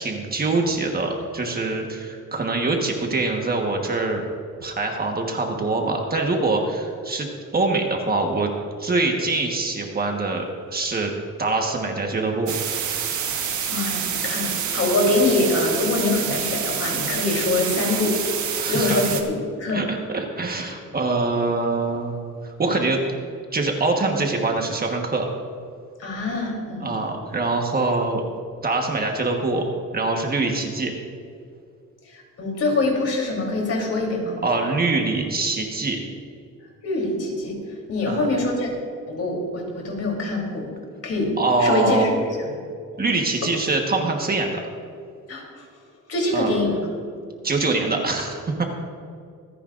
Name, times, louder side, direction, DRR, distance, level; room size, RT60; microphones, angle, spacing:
voice 1, 0.0-4.2 4.6-8.5 8.8-11.1 11.4-12.6 18.6-19.0 19.7-19.9 20.1-22.1 22.4-23.0 23.5-25.3 26.8-28.2 28.6-30.9 34.4-36.0 38.1-38.3 41.4-42.1 43.0-44.6 46.3-46.5 47.4-48.6, right 3 dB, 30° right, 2 dB, 1.4 m, -24 dB
sound 1, 12.5-19.2, right 8 dB, 70° right, 1.4 m, -27 dB
voice 2, 13.7-18.2 18.7-19.8 26.0-27.0 32.1-34.4 36.8-37.6 37.9-38.7 39.1-40.7 41.0-41.3 41.6-42.1 45.3-45.7 46.1-46.8, left 2 dB, 50° left, -1 dB, 3.5 m, -24 dB
25.0 x 10.0 x 2.6 m, 2.3 s
cardioid pair, 140°, 31 cm